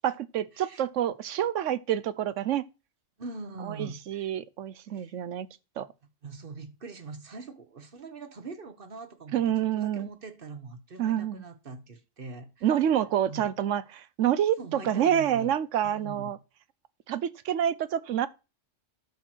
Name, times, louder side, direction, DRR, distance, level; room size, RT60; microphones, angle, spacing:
voice 1, 0.0-2.7 3.7-5.5 5.8-5.9 9.3-10.1 11.0-11.4 12.6-16.4 17.1-18.3, right 10 dB, 75° right, 1.0 m, -27 dB
voice 2, 3.2-4.3 4.9-5.2 6.2-9.4 9.7-12.7 13.3-13.5 14.6-15.5 15.8-16.4, right 3 dB, 45° right, 1.3 m, -42 dB
12.0 x 4.5 x 6.1 m
omnidirectional pair, 1.3 m